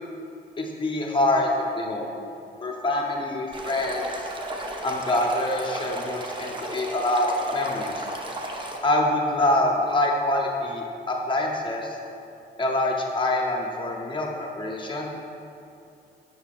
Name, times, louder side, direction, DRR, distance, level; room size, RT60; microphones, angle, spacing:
voice 1, 0.6-1.5 1.8-2.1 2.6-4.1 4.8-8.1 8.8-12.0 12.6-15.1, left 1 dB, 25° left, -1 dB, 0.8 m, -25 dB
Stream, 3.5-8.8, right 1 dB, 25° right, 0.6 m, -34 dB
6.9 x 6.1 x 2.5 m, 2.6 s
cardioid pair, 120°, 20 cm